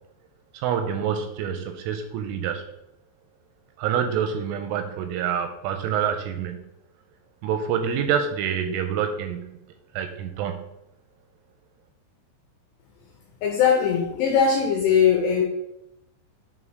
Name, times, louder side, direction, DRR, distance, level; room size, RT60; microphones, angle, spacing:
voice 1, 0.5-2.6 3.8-6.6 7.4-9.6 9.9-10.6, right 8 dB, 85° right, 7 dB, 2.9 m, -27 dB
voice 2, 13.4-15.4, left 7 dB, 85° left, 0 dB, 2.5 m, -20 dB
7.8 x 4.1 x 4.7 m, 0.87 s
omnidirectional pair, 5.8 m